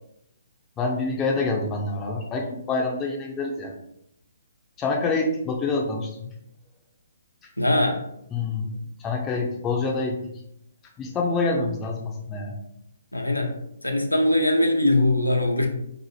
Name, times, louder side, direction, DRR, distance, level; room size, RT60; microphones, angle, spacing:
voice 1, 0.8-3.7 4.8-6.3 8.3-8.7 9.0-10.2 11.0-12.6, left 3 dB, 15° left, 0 dB, 0.4 m, -26 dB
voice 2, 7.6-8.0 13.1-13.5 13.8-15.7, left 1 dB, 90° left, 3 dB, 0.5 m, -21 dB
2.6 x 2.0 x 3.1 m, 0.78 s
figure-of-eight pair, 130°, 0 cm